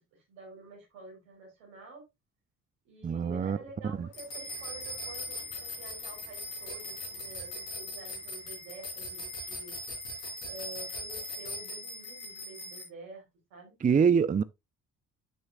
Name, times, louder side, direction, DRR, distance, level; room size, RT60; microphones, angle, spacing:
voice 1, 0.1-2.0 2.8-9.7 10.5-13.7, right 3 dB, 75° right, 4.4 m, -49 dB
voice 2, 3.0-3.6 4.0-4.1 13.8-14.4, right 6 dB, 20° right, 0.5 m, -24 dB
sound 1, 4.1-12.8, left 1 dB, 80° left, 3.6 m, -40 dB
10.5 x 6.4 x 2.4 m
figure-of-eight pair, 45°, 41 cm